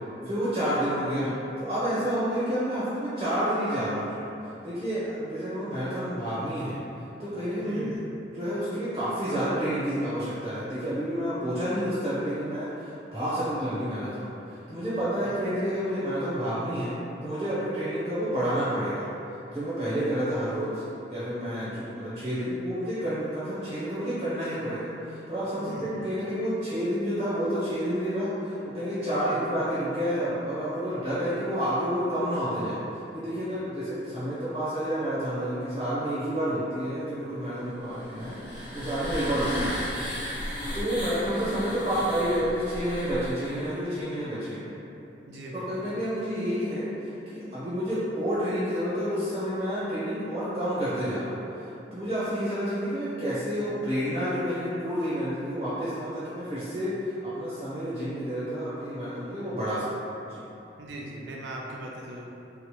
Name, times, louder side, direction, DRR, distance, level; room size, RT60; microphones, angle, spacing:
voice 1, 0.2-1.3 1.6-4.3 4.6-6.8 7.2-7.9 8.3-16.9 17.2-19.1 19.5-20.8 21.1-32.8 33.1-39.8 40.7-44.6 45.6-59.9 60.2-60.4, equal, 25° right, -12 dB, 0.5 m, -29 dB
voice 2, 7.6-8.0 15.1-15.4 25.6-25.9 29.1-29.5 39.0-39.4 45.3-45.9 60.8-62.3, right 1 dB, 90° right, -2 dB, 0.4 m, -40 dB
sound 1, 37.9-43.7, equal, 30° left, 0.7 m, -35 dB
2.8 x 2.0 x 3.0 m, 2.8 s
head